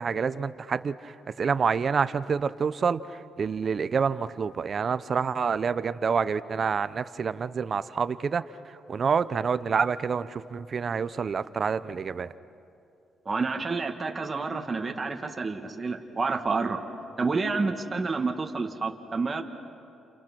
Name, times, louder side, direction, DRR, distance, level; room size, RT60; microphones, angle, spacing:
voice 1, 0.0-12.3, right 6 dB, 45° right, 14 dB, 0.7 m, -28 dB
voice 2, 13.3-16.8 17.2-19.4, right 4 dB, 30° right, 3 dB, 1.9 m, -29 dB
29.0 x 29.0 x 6.1 m, 2.6 s
cardioid pair, 90°, 0 cm